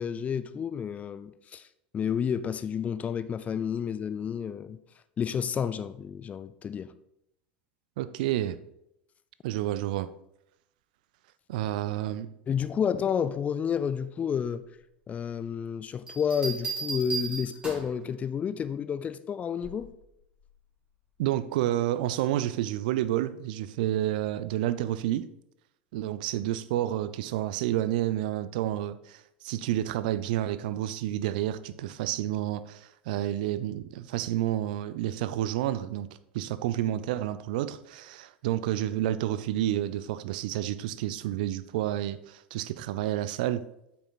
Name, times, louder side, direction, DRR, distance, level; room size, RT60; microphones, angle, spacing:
voice 1, 0.0-1.7 1.9-4.8 5.2-6.9 12.5-14.6 15.1-19.9, left 7 dB, 25° left, 0.5 m, -30 dB
voice 2, 8.0-8.6 9.4-10.1 11.5-12.3 21.2-25.2 25.9-36.1 36.3-43.6, right 13 dB, 55° right, 0.5 m, -30 dB
sound 1, 16.1-18.0 19.6-20.0, right 4 dB, 15° right, 3.3 m, -35 dB
8.3 x 5.9 x 4.1 m
figure-of-eight pair, 75°, 5 cm